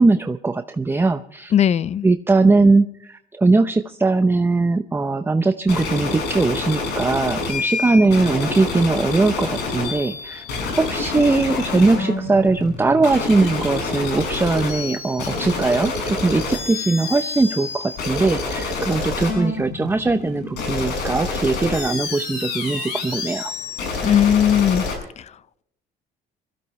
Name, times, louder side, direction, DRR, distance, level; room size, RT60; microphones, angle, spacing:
voice 1, 0.0-1.5 2.0-10.4 10.8-23.5, right 3 dB, 15° right, 0.7 m, -20 dB
voice 2, 1.5-2.1 24.0-24.8 25.2-25.3, left 9 dB, 40° left, 0.5 m, -17 dB
sound 1, 5.7-24.9, left 3 dB, 80° left, 6.3 m, -27 dB
23.5 x 15.5 x 3.2 m
cardioid pair, 110°, 17 cm